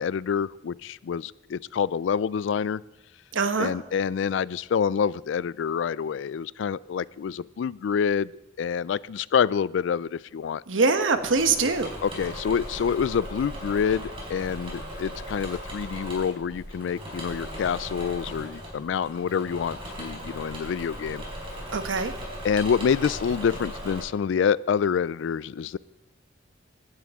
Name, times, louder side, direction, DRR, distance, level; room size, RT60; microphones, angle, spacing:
voice 1, 0.0-2.8 3.6-8.3 8.6-10.6 12.0-21.2 22.4-25.8, left 7 dB, 70° left, 21 dB, 0.3 m, -27 dB
voice 2, 3.3-3.7 10.7-11.9 21.7-22.1, right 4 dB, 90° right, 8 dB, 1.0 m, -23 dB
Engine / Mechanisms, 11.1-24.0, equal, 30° right, 4.5 m, -38 dB
17.0 x 11.0 x 3.6 m, 0.91 s
head